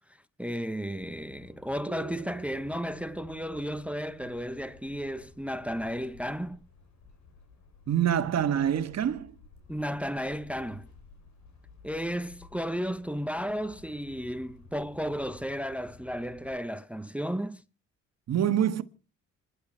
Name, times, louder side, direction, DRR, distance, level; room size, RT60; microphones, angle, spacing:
voice 1, 0.4-6.6 9.7-10.9 11.8-17.6, equal, 5° right, 0.7 m, -33 dB
sound 1, 1.0-16.6, left 5 dB, 65° left, 5.3 m, -54 dB
sound 2, 1.9-5.3, right 10 dB, 35° right, 2.9 m, -49 dB
voice 2, 7.9-9.3 18.3-18.8, right 9 dB, 60° right, 1.5 m, -26 dB
27.0 x 11.0 x 4.5 m
cardioid pair, 90°, 30 cm